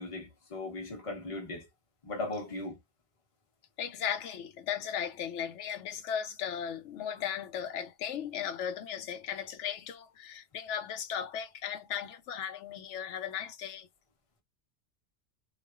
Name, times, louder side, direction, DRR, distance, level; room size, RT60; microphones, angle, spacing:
voice 1, 0.0-1.7 2.0-2.8, left 2 dB, 30° left, 1.1 m, -38 dB
voice 2, 3.8-13.9, left 8 dB, 85° left, 0.9 m, -36 dB
3.1 x 2.1 x 2.4 m
omnidirectional pair, 1.2 m